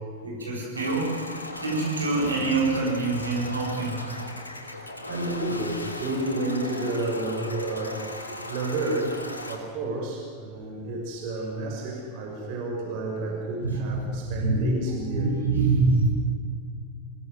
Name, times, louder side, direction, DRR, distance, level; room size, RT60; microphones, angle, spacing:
voice 1, 0.2-1.2 1.6-4.2 13.6-14.7 15.1-16.1, right 3 dB, 75° right, -2 dB, 7.1 m, -25 dB
sound 1, 0.7-9.6, left 1 dB, 80° left, 3.0 m, -38 dB
voice 2, 4.0-9.2 9.5-15.3, right 2 dB, 45° right, -1 dB, 6.1 m, -31 dB
25.5 x 18.0 x 7.9 m, 2.2 s
figure-of-eight pair, 90°, 0 cm